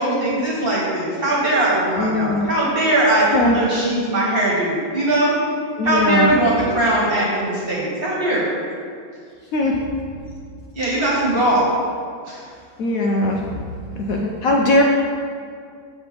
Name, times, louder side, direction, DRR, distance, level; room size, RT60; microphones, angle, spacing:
voice 1, 0.0-3.3 3.5-5.3 5.8-8.4 10.7-11.7, right 1 dB, 30° right, -5 dB, 1.5 m, -20 dB
voice 2, 2.0-2.5 3.3-3.6 5.8-6.3 9.5-9.8 12.8-13.5 14.0-14.8, left 2 dB, 85° left, -1 dB, 0.7 m, -19 dB
6.7 x 3.3 x 5.9 m, 2.2 s
omnidirectional pair, 2.1 m